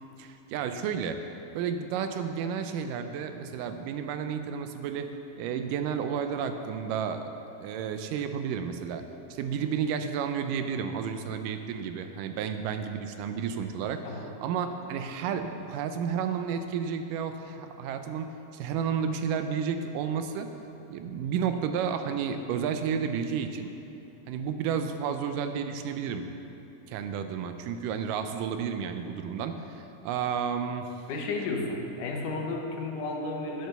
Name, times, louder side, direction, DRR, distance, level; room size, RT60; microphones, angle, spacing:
voice 1, 0.2-1.2 1.6-5.1 5.4-7.3 7.6-9.1 9.3-14.0 14.4-20.5 20.9-23.7 24.3-26.3 26.9-30.9, right 7 dB, 80° right, 8 dB, 2.0 m, -31 dB
voice 2, 31.1-33.7, left 3 dB, 70° left, 0 dB, 2.5 m, -33 dB
9.0 x 8.0 x 6.6 m, 2.9 s
omnidirectional pair, 4.1 m